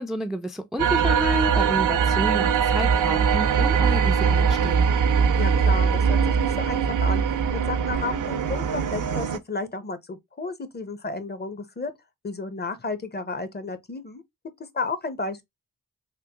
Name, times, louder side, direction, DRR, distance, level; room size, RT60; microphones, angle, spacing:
voice 1, 0.0-4.9, equal, ahead, 0.3 m, -30 dB
sound 1, 0.8-9.4, right 6 dB, 60° right, 0.5 m, -21 dB
voice 2, 5.4-11.9 12.2-14.2 14.7-15.4, left 3 dB, 30° left, 0.7 m, -32 dB
3.6 x 2.1 x 2.7 m
cardioid pair, 60°, 35 cm